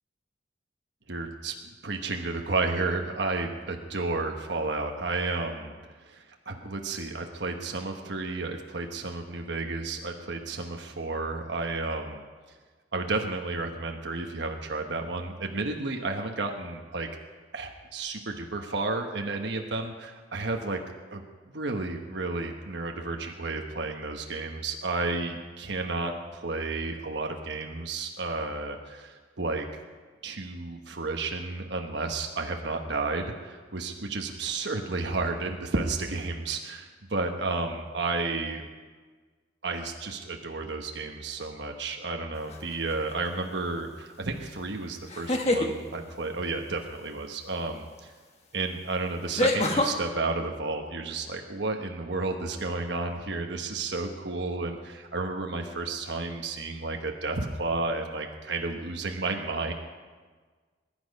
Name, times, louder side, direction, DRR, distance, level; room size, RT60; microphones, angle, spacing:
voice 1, 1.1-5.7 6.0-12.2 12.9-17.1 17.5-20.8 21.1-21.2 21.5-29.7 30.2-38.6 39.6-48.1 48.5-59.7, right 3 dB, 70° right, 3 dB, 1.2 m, -32 dB
sound 1, 42.5-42.9 45.1-45.7 48.0-48.1 49.4-49.9, left 2 dB, 35° left, 1.4 m, -25 dB
21.5 x 10.5 x 5.3 m, 1.4 s
head